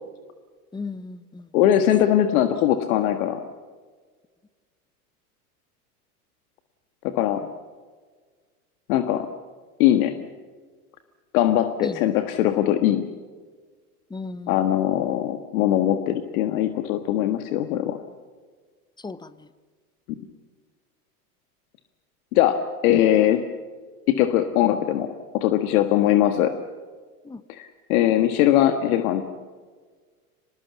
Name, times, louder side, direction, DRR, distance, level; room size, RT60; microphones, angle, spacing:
voice 1, 0.7-1.5 11.8-12.0 14.1-14.7 19.0-19.5 27.2-27.4, left 3 dB, 10° left, 15 dB, 1.0 m, -35 dB
voice 2, 1.5-3.4 7.0-7.4 8.9-9.3 9.8-10.1 11.3-13.0 14.5-18.0 22.3-22.6 22.8-23.4 24.1-25.1 25.3-26.5 27.5-29.3, left 12 dB, 65° left, 8 dB, 1.7 m, -21 dB
24.5 x 20.0 x 7.3 m, 1.5 s
hypercardioid pair, 95°, 46 cm